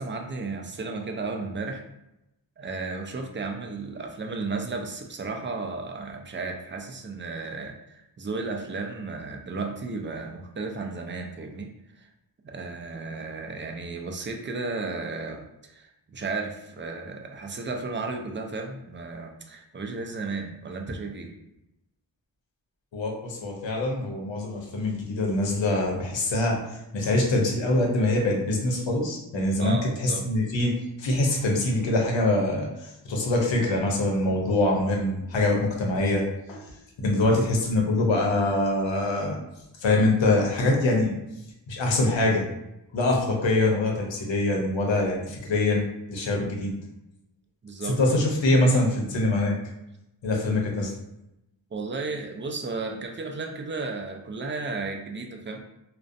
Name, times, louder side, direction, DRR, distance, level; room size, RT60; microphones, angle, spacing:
voice 1, 0.0-1.8 2.6-11.7 11.9-12.1 12.4-21.3 29.6-30.3 47.6-48.0 51.7-55.6, right 3 dB, 25° right, 3 dB, 0.4 m, -34 dB
voice 2, 22.9-26.6 26.9-30.7 31.0-32.7 33.0-36.6 37.0-39.4 39.8-41.2 41.7-42.4 42.9-46.7 48.0-49.6 50.2-50.9, left 2 dB, 85° left, 0 dB, 0.7 m, -24 dB
2.4 x 2.1 x 2.5 m, 0.89 s
cardioid pair, 40°, 44 cm